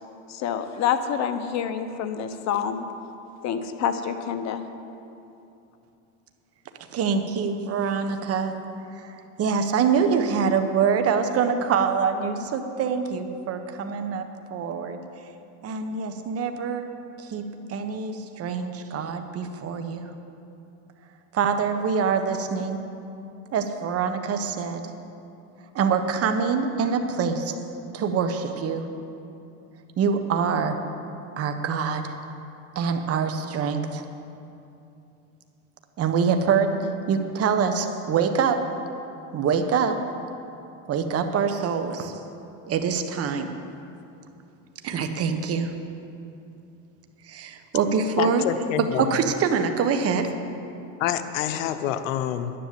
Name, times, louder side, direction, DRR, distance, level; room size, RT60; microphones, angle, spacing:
voice 1, 0.3-2.8 3.4-4.7, left 8 dB, 45° left, 8 dB, 1.1 m, -27 dB
voice 2, 6.9-8.6 9.0-9.1 9.4-14.2 14.5-15.0 15.6-16.9 17.2-20.1 21.3-22.8 23.5-24.8 25.7-27.6 27.9-28.9 30.0-30.8 31.4-32.2 32.7-34.0 36.0-38.7 39.3-40.0 40.9-42.1 42.7-43.5 44.8-45.7 47.3-48.5 49.0-50.3, right 6 dB, 40° right, 7 dB, 1.2 m, -25 dB
voice 3, 48.2-49.1 51.0-52.5, left 10 dB, 85° left, 10 dB, 0.9 m, -27 dB
11.0 x 10.0 x 7.7 m, 2.8 s
supercardioid pair, 115°, 38 cm